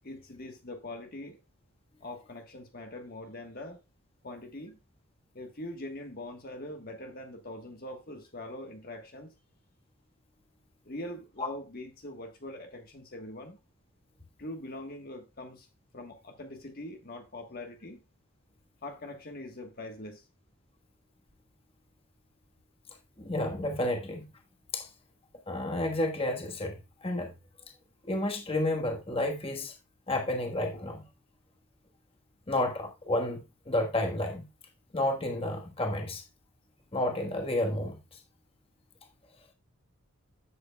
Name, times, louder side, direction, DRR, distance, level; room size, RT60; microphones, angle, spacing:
voice 1, 0.0-1.4 2.0-3.8 4.2-4.8 5.3-9.3 10.8-13.6 14.4-15.7 15.9-18.0 18.8-20.3, left 1 dB, 40° left, 1.3 m, -42 dB
voice 2, 23.2-24.3 24.7-24.9 25.5-27.3 28.0-29.7 30.1-31.0 32.5-34.5 34.9-36.2 36.9-38.2, left 1 dB, 25° left, 1.4 m, -31 dB
11.0 x 7.9 x 2.3 m
head